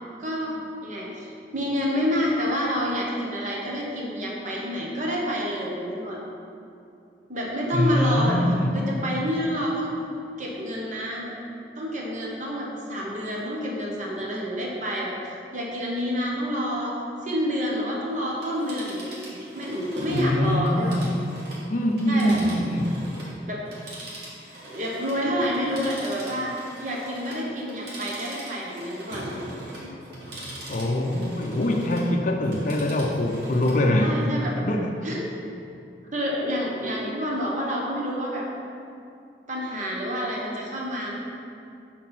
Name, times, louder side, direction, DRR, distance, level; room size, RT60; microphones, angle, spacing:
voice 1, 0.2-6.2 7.3-8.4 8.7-10.0 10.4-11.3 11.7-15.1 15.5-16.9 17.2-21.0 22.1-22.3 23.5-23.6 24.6-26.5 26.8-29.3 29.8-29.9 34.0-34.5 35.0-35.2 36.1-38.5 39.5-41.2, equal, 45° right, -3 dB, 1.2 m, -28 dB
voice 2, 7.7-8.8 20.1-21.2 21.7-23.0 30.7-34.2 34.6-34.9, left 1 dB, 45° left, 2 dB, 0.5 m, -23 dB
Telephone, 18.3-23.4 23.7-32.1 32.4-33.8 34.2-34.3, right 1 dB, 60° right, 1.7 m, -43 dB
sound 1, 18.8-18.9 20.0-21.3 22.3-23.6 23.9-24.0 25.2-26.4 26.7-27.6 29.1-34.0 34.3-34.4 34.8-34.9 35.3-35.9, right 1 dB, 80° right, 1.3 m, -40 dB
6.2 x 4.2 x 5.9 m, 2.6 s
head